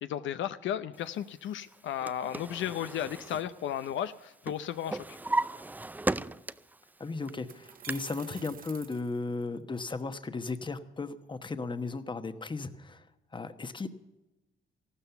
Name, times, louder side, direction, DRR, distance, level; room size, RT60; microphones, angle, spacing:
voice 1, 0.0-5.2, left 10 dB, 75° left, 11 dB, 0.6 m, -34 dB
Drawer open or close, 1.7-4.2 4.5-6.8 7.2-7.9, right 2 dB, 10° right, 0.4 m, -35 dB
sound 1, 6.6-6.7 7.3-9.8, right 8 dB, 45° right, 0.7 m, -49 dB
voice 2, 7.0-13.1 13.3-13.9, left 3 dB, 25° left, 10 dB, 1.1 m, -36 dB
14.0 x 12.5 x 7.0 m, 1.0 s
cardioid pair, 90°, 20 cm